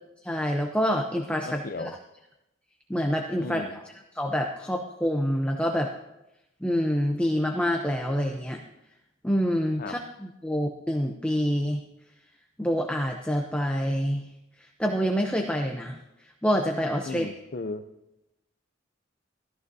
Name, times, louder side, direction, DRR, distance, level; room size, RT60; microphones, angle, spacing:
voice 1, 0.2-1.9 2.9-3.6 4.1-5.9 6.6-8.6 9.2-11.8 12.6-14.2 14.6-17.3, equal, 5° left, 2 dB, 0.6 m, -27 dB
voice 2, 1.5-2.0 3.4-3.8 9.8-9.9 17.1-17.9, left 3 dB, 50° left, 10 dB, 0.6 m, -36 dB
15.5 x 14.0 x 2.7 m, 0.92 s
head